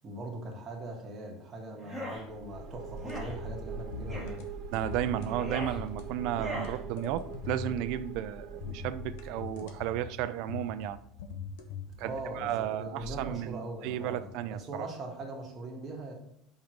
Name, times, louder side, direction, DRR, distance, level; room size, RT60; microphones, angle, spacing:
voice 1, 0.0-4.4 12.0-16.1, right 2 dB, 20° right, -1 dB, 1.4 m, -41 dB
sound 1, 1.8-2.2 3.0-3.3 4.1-4.3 5.2-5.8 6.3-6.7, right 1 dB, 5° left, 1.6 m, -39 dB
sound 2, 2.1-9.9, right 4 dB, 35° right, 1.2 m, -43 dB
sound 3, 3.0-3.6 3.9-4.5 4.8-5.3 5.6-6.1 6.4-7.9 8.6-10.2 10.5-12.6 13.0-13.3, left 5 dB, 85° left, 1.0 m, -42 dB
voice 2, 4.7-11.0 12.0-14.9, right 11 dB, 55° right, 11 dB, 0.4 m, -33 dB
5.5 x 4.5 x 5.1 m, 0.73 s
cardioid pair, 170°, 0 cm